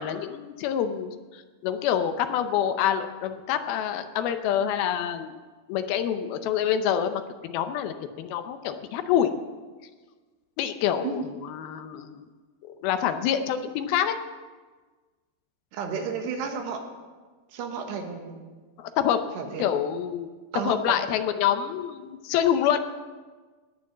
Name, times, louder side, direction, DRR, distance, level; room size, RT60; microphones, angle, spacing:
voice 1, 0.0-5.4 5.7-9.3 10.6-12.3 12.8-14.2 18.8-19.2 19.6-20.3 20.7-22.8, left 9 dB, 75° left, 8 dB, 2.4 m, -26 dB
voice 2, 15.7-16.9 17.5-18.5 19.4-19.6 20.5-21.0, right 6 dB, 80° right, 4 dB, 3.5 m, -32 dB
18.5 x 6.9 x 7.4 m, 1.4 s
omnidirectional pair, 4.8 m